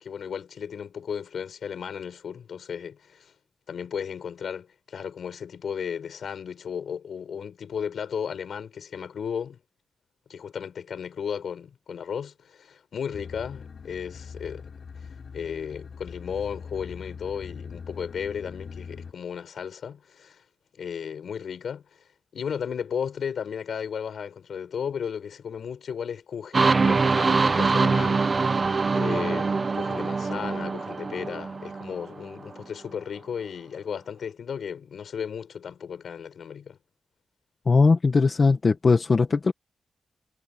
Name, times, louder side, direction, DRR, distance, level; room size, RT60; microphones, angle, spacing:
voice 1, 0.0-3.3 3.7-9.6 10.3-14.7 15.0-15.1 15.3-20.4 20.7-22.0 22.3-28.2 29.0-36.8, left 7 dB, 70° left, 5.3 m, -34 dB
sound 1, 13.1-19.1, left 6 dB, 50° left, 4.8 m, -41 dB
sound 2, 26.5-32.3, right 4 dB, 35° right, 1.0 m, -24 dB
voice 2, 37.7-39.5, left 4 dB, 35° left, 1.6 m, -19 dB
wide cardioid pair, 130°, 0 cm